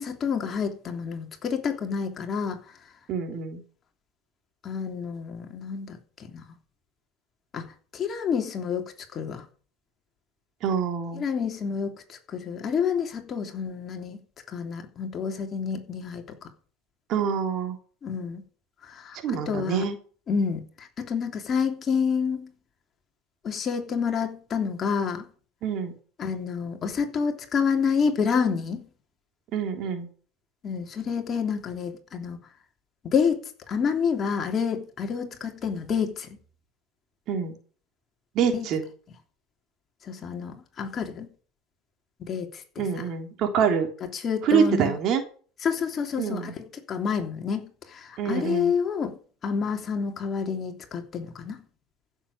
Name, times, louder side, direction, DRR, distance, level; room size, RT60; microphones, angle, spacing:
voice 1, 0.0-2.6 4.6-6.4 7.5-9.4 11.2-14.2 14.5-16.5 18.0-18.4 18.8-19.9 20.3-22.5 23.4-25.3 26.2-28.8 30.6-32.4 33.0-33.4 33.7-36.4 38.5-38.7 40.1-41.3 42.2-43.0 44.1-45.0 45.6-46.5 46.9-49.2 49.4-51.6, left 6 dB, 35° left, 3.1 m, -28 dB
voice 2, 3.1-3.6 10.6-11.2 17.1-17.8 19.2-20.0 25.6-25.9 29.5-30.1 37.3-37.5 38.4-38.8 42.8-43.9 44.4-45.2 46.2-46.5 48.2-48.7, right 7 dB, 55° right, 3.4 m, -26 dB
15.0 x 7.3 x 6.8 m
supercardioid pair, 100°, 0 cm